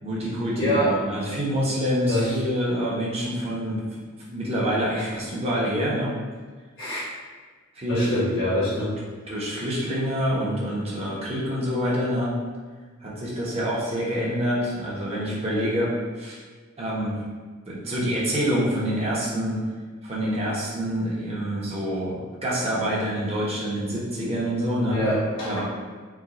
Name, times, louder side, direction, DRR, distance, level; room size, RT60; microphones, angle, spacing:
voice 1, 0.0-4.0 4.3-6.2 7.7-8.6 9.3-12.4 13.0-16.4 16.8-17.2 17.7-19.6 20.0-25.0 25.4-25.6, equal, 30° right, -6 dB, 0.8 m, -26 dB
voice 2, 0.6-0.9 2.1-2.3 4.9-5.1 6.8-7.1 7.9-9.0 24.9-25.6, left 1 dB, 70° left, -9 dB, 1.1 m, -25 dB
4.7 x 2.4 x 2.9 m, 1.4 s
head